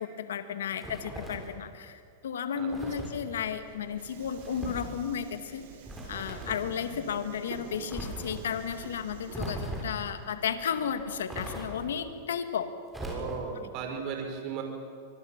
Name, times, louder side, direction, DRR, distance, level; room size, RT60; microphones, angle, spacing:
voice 1, 0.0-5.6 6.1-12.7, left 7 dB, 85° left, 9 dB, 2.0 m, -33 dB
sound 1, 0.8-1.6 2.7-3.2 4.4-4.9 5.8-6.7 7.9-8.4 9.3-10.1 11.3-12.0 12.9-13.6, right 1 dB, 5° right, 7.0 m, -39 dB
Subway metro underground, 3.3-12.1, right 7 dB, 70° right, 3.4 m, -49 dB
voice 2, 13.0-14.6, right 6 dB, 45° right, 3 dB, 5.3 m, -36 dB
25.5 x 22.0 x 7.4 m, 2.3 s
hypercardioid pair, 125°, 0 cm